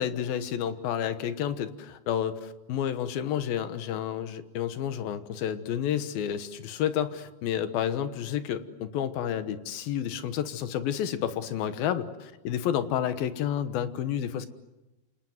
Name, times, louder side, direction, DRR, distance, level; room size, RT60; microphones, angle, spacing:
voice 1, 0.0-14.5, left 9 dB, 75° left, 11 dB, 3.0 m, -30 dB
28.0 x 27.0 x 7.9 m, 1.0 s
omnidirectional pair, 4.4 m